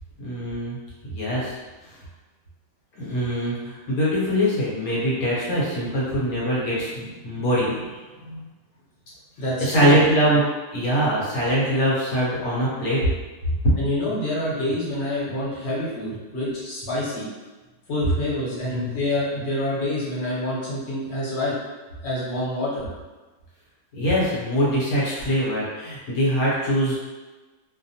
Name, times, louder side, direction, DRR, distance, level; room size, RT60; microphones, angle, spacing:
voice 1, 0.2-0.8 1.0-1.6 2.9-8.0 8.3-8.4 9.6-10.4 10.7-13.1 13.6-13.7 18.6-19.0 23.9-27.0, equal, 65° left, -7 dB, 1.2 m, -23 dB
voice 2, 9.4-10.0 10.2-10.3 13.8-17.3 17.9-21.5 22.0-22.9, left 1 dB, 45° left, -8 dB, 1.1 m, -27 dB
2.7 x 2.1 x 2.7 m, 1.2 s
omnidirectional pair, 1.8 m